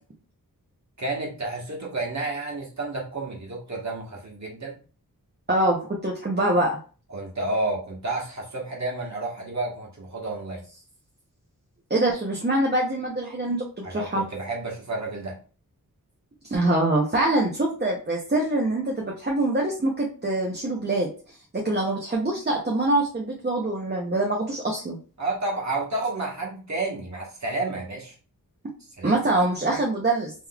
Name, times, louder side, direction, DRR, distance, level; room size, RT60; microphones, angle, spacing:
voice 1, 1.0-4.8 7.1-10.6 13.8-15.4 25.2-28.1 29.0-29.2, right 2 dB, 50° right, -2 dB, 1.3 m, -30 dB
voice 2, 5.5-6.8 11.9-14.2 16.5-21.1 21.5-25.0 29.0-30.3, right 2 dB, 30° right, -3 dB, 0.7 m, -24 dB
3.7 x 3.1 x 2.3 m, 0.37 s
wide cardioid pair, 70°, 36 cm